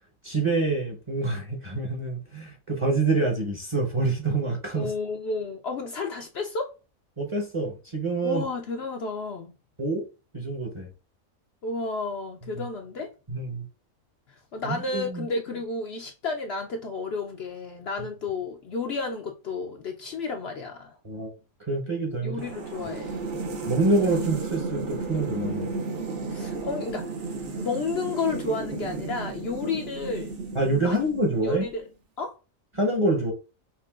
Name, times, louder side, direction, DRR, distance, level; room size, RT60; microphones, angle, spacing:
voice 1, 0.2-4.9 7.2-8.4 9.8-10.1 10.3-10.9 12.5-12.7 13.3-13.6 14.6-15.3 21.0-21.3 21.7-22.4 23.7-25.7 30.5-31.7 32.7-33.3, right 2 dB, 25° right, 0.8 m, -26 dB
voice 2, 4.7-6.7 8.2-9.5 11.6-13.1 14.5-21.0 22.2-23.2 26.3-27.1 27.6-30.3 30.8-31.0 31.4-31.9 32.2-32.4, left 3 dB, 60° left, 0.7 m, -31 dB
sound 1, 22.4-31.7, right 4 dB, 65° right, 1.1 m, -34 dB
5.9 x 2.5 x 2.4 m
omnidirectional pair, 1.4 m